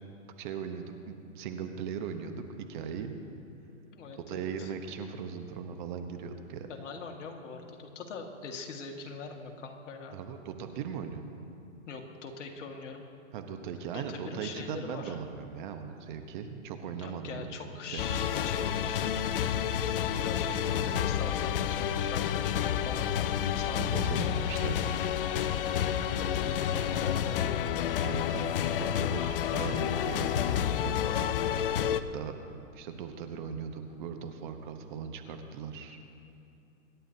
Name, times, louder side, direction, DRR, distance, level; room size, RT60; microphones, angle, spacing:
voice 1, 0.4-3.2 4.3-6.7 10.1-11.2 13.3-17.6 17.9-18.2 23.8-25.0 28.0-28.5 28.7-31.0 31.9-32.3 32.7-36.0, right 7 dB, 35° right, 6 dB, 1.0 m, -39 dB
voice 2, 3.9-4.7 6.7-10.2 11.9-13.0 13.9-15.2 17.0-19.3 20.2-23.3 23.5-24.3 25.6-27.7, left 4 dB, 60° left, 2 dB, 1.9 m, -42 dB
sound 1, 18.0-32.0, left 9 dB, 45° left, 0.5 m, -29 dB
25.5 x 11.5 x 2.8 m, 2.7 s
hypercardioid pair, 140°, 41 cm